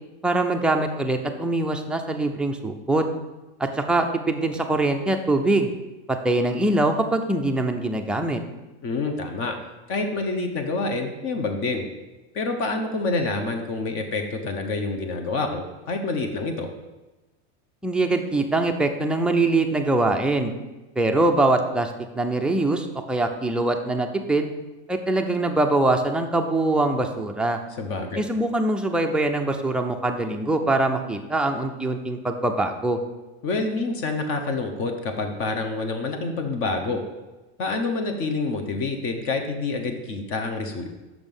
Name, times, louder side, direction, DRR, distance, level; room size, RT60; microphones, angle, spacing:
voice 1, 0.2-3.1 3.6-5.7 6.1-8.4 17.8-20.5 21.0-24.5 24.9-27.6 28.2-33.0, right 2 dB, 5° right, 3 dB, 0.4 m, -23 dB
voice 2, 8.8-9.6 9.9-11.9 12.3-16.7 27.8-28.2 33.4-37.0 37.6-41.0, left 3 dB, 40° left, 5 dB, 0.9 m, -27 dB
6.1 x 5.2 x 5.4 m, 1.1 s
supercardioid pair, 125°, 34 cm